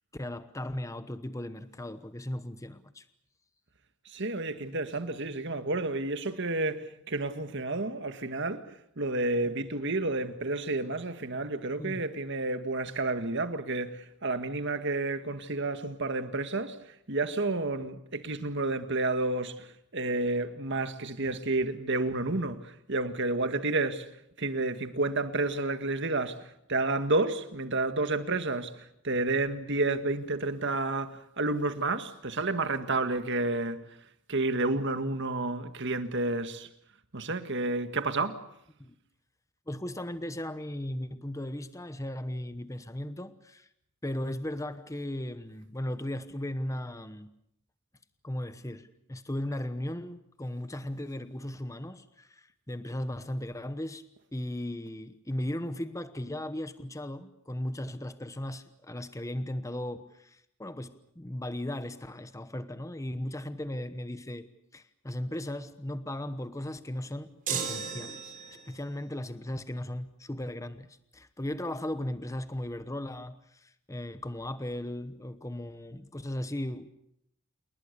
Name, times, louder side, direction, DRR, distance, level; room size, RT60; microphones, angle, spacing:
voice 1, 0.1-3.0 11.8-12.0 38.8-38.9 39.7-43.7 44.0-47.3 48.2-54.1 54.3-76.9, left 1 dB, 15° left, 1.0 m, -37 dB
voice 2, 4.1-24.1 24.4-33.9 34.3-36.7 37.1-38.4, right 2 dB, 55° right, 1.8 m, -30 dB
sound 1, 67.5-68.8, right 6 dB, 40° right, 4.8 m, -35 dB
29.0 x 20.5 x 6.9 m
head